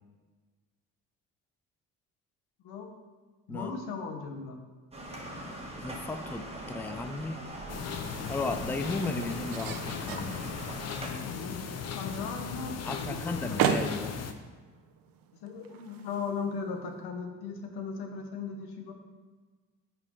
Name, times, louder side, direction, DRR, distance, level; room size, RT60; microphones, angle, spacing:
voice 1, 2.6-2.9 3.5-4.6 11.1-11.6 11.9-13.6 15.4-18.9, left 5 dB, 75° left, 4 dB, 1.3 m, -37 dB
sound 1, 4.9-11.1, right 1 dB, 15° right, 1.5 m, -42 dB
voice 2, 5.8-7.4 8.3-10.4 12.9-14.2, left 2 dB, 5° left, 6 dB, 0.5 m, -35 dB
sound 2, 6.7-17.0, right 7 dB, 65° right, 0.8 m, -38 dB
sound 3, 7.7-14.3, left 6 dB, 40° left, 0.8 m, -37 dB
5.4 x 5.1 x 5.5 m, 1.4 s
supercardioid pair, 85°, 38 cm